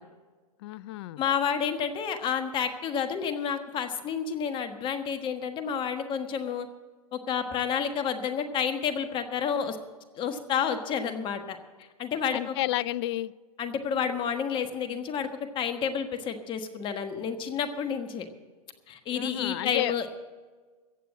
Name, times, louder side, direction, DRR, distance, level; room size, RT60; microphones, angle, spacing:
voice 1, 0.6-1.2 12.3-13.3 19.1-19.9, left 15 dB, 45° left, 22 dB, 0.4 m, -31 dB
voice 2, 1.2-6.7 7.1-9.8 10.2-11.6 12.0-12.5 13.6-15.3 15.5-18.3 18.9-20.1, left 7 dB, 25° left, 8 dB, 1.3 m, -30 dB
15.0 x 8.2 x 7.5 m, 1.4 s
hypercardioid pair, 125°, 20 cm